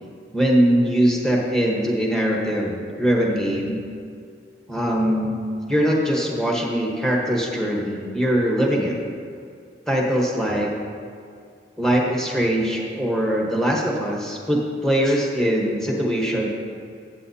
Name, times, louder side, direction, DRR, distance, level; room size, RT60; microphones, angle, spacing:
voice 1, 0.3-3.8 4.7-5.4 5.7-9.0 9.9-10.7 11.8-16.5, equal, 5° left, -2 dB, 1.2 m, -21 dB
14.5 x 8.2 x 2.8 m, 2.3 s
head